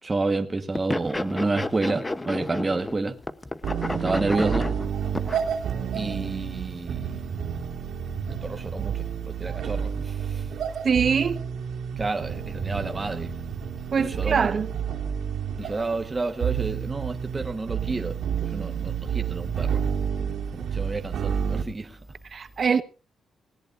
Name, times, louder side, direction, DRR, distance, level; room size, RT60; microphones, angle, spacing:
voice 1, 0.0-3.2 3.9-4.7 5.9-7.2 8.3-10.5 12.0-13.4 14.0-14.5 15.6-19.8 20.5-22.0, right 3 dB, 20° right, 1.3 m, -30 dB
sound 1, 0.7-3.0 3.2-5.5, left 2 dB, 15° left, 0.9 m, -31 dB
sound 2, 3.6-21.6, right 7 dB, 75° right, 2.7 m, -30 dB
voice 2, 10.8-11.4 13.9-14.7 22.3-22.8, right 6 dB, 45° right, 1.1 m, -23 dB
19.5 x 17.5 x 2.6 m
cardioid pair, 100°, 0 cm